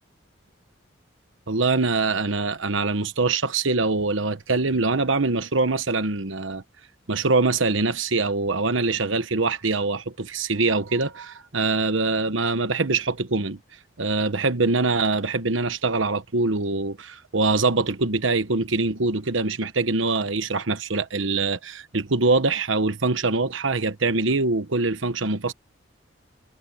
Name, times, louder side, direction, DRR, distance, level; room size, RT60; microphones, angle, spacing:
voice 1, 1.5-6.6 7.1-13.6 14.0-25.5, right 3 dB, 80° right, 1.2 m, -23 dB
head